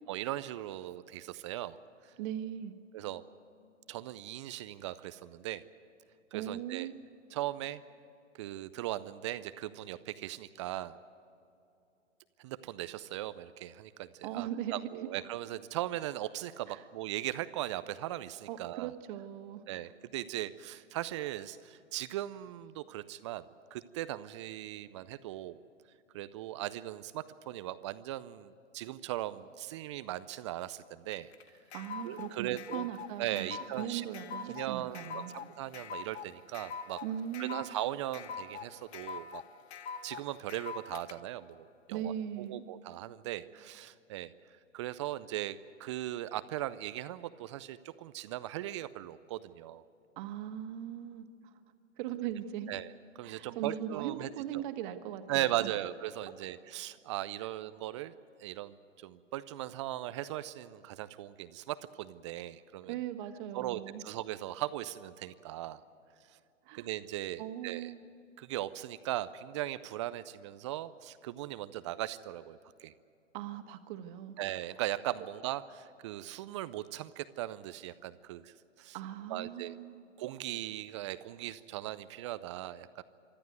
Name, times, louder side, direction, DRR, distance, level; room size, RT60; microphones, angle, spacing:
voice 1, 0.1-1.8 2.0-2.1 2.9-3.2 3.9-5.6 6.3-6.9 7.3-7.8 8.4-11.0 12.4-18.9 19.7-23.4 23.7-25.6 26.1-31.3 32.0-32.9 33.2-34.0 34.4-37.0 37.4-39.4 40.0-44.3 44.7-49.8 52.7-52.9 53.2-54.6 55.3-58.1 58.4-63.0 63.5-65.8 66.7-67.9 68.4-72.9 74.4-79.0 79.3-79.7 80.2-83.0, right 14 dB, 25° right, 14 dB, 0.4 m, -38 dB
voice 2, 2.2-2.7 6.3-6.9 14.2-14.9 16.7-16.8 18.5-19.6 31.7-35.4 37.0-37.7 41.9-42.6 50.2-51.5 52.0-52.7 53.2-55.7 62.9-64.0 66.6-66.9 67.4-68.0 73.3-74.4 78.9-80.0, right 10 dB, 40° right, 7 dB, 1.7 m, -39 dB
sound 1, 31.1-41.1, left 6 dB, 55° left, 1.1 m, -43 dB
24.5 x 13.5 x 9.3 m, 2.7 s
hypercardioid pair, 120°, 38 cm